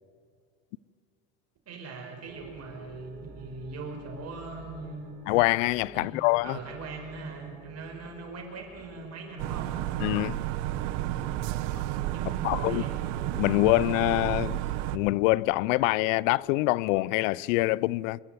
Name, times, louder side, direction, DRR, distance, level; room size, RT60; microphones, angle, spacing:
voice 1, 1.7-5.2 5.9-6.2 6.4-9.7 12.1-12.9, right 3 dB, 40° right, 5.2 m, -40 dB
sound 1, 2.3-17.5, right 4 dB, 20° right, 4.6 m, -51 dB
voice 2, 5.3-6.6 10.0-10.4 12.4-12.8 13.4-14.6 14.9-18.2, left 20 dB, 85° left, 0.5 m, -25 dB
sound 2, 9.4-15.0, right 14 dB, 80° right, 1.0 m, -31 dB
27.5 x 11.0 x 9.3 m
supercardioid pair, 110°, 38 cm